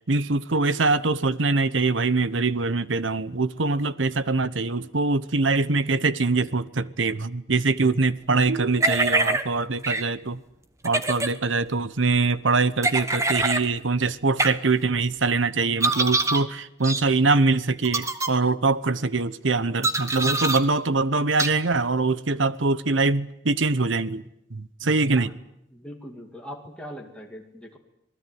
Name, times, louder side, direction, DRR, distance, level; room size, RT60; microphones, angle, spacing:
voice 1, 0.1-10.4 10.8-24.2 24.5-25.3, right 3 dB, 85° right, 1.1 m, -23 dB
sound 1, 8.8-9.4 9.8-10.0 10.8-11.3 12.8-13.6 14.4-14.5 15.8-16.4 16.8-17.0 17.8-18.3 19.8-20.6 21.4-21.5, right 2 dB, 15° right, 1.3 m, -24 dB
voice 2, 25.7-27.8, equal, 5° left, 2.5 m, -41 dB
27.0 x 19.0 x 9.4 m
head